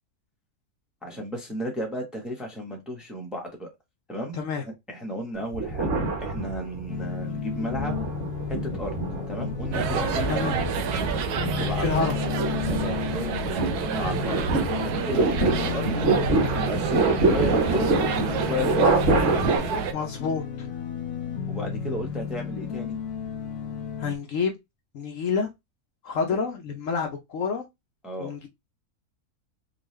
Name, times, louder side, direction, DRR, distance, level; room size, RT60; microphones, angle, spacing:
voice 1, 1.0-3.7 4.1-4.4 4.9-5.9 6.2-8.0 8.5-9.0 9.3-10.3 11.6-12.0 12.7-14.4 14.8-16.2 16.5-17.9 18.3-19.0 19.3-19.8 21.5-23.0 26.3-26.4 28.0-28.3, equal, ahead, 0.9 m, -34 dB
voice 2, 4.3-4.6 10.3-10.6 11.8-12.1 19.9-20.7 24.0-24.6 24.9-25.5 26.0-27.6 28.2-28.5, left 5 dB, 65° left, 1.0 m, -28 dB
sound 1, 5.5-7.0 7.5-19.6, right 3 dB, 55° right, 1.4 m, -26 dB
sound 2, 6.9-24.2, left 7 dB, 85° left, 1.1 m, -33 dB
sound 3, 9.7-19.9, right 7 dB, 90° right, 1.2 m, -30 dB
3.9 x 2.6 x 3.1 m
omnidirectional pair, 1.6 m